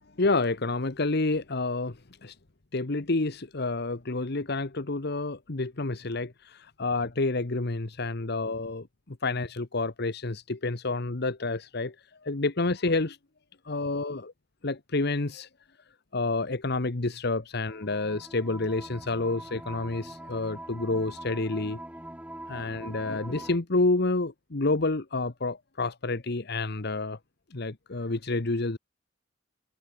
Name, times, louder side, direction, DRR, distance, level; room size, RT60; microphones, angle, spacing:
voice 1, 0.2-2.4 2.7-11.9 12.2-13.2 13.6-14.3 14.6-15.5 16.1-21.8 22.5-27.2 27.5-28.8, left 3 dB, 60° left, 1.2 m, -29 dB
sound 1, 17.7-23.6, right 1 dB, 5° right, 4.9 m, -43 dB
head